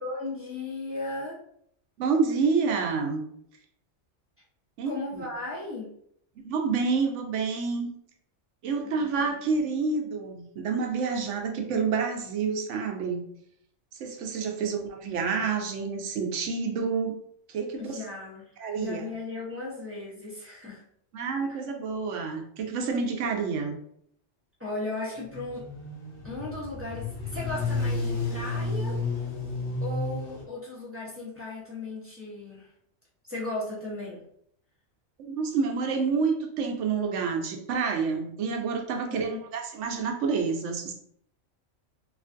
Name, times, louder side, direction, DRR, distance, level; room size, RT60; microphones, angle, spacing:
voice 1, 0.0-1.4 4.9-5.9 8.8-9.1 9.5-9.6 14.6-14.7 17.8-20.8 21.5-21.6 24.6-25.7 26.2-29.0 29.8-32.7 33.3-34.2 39.3-39.4, left 2 dB, 15° right, -7 dB, 0.6 m, -36 dB
voice 2, 2.0-3.2 4.8-5.2 6.4-7.9 8.6-13.2 13.9-17.2 17.5-18.0 18.6-19.0 21.1-23.8 35.2-40.9, right 5 dB, 80° right, 3 dB, 0.9 m, -28 dB
sound 1, 25.3-30.4, left 3 dB, 55° left, 0.9 m, -31 dB
3.1 x 2.4 x 2.5 m, 0.69 s
omnidirectional pair, 1.2 m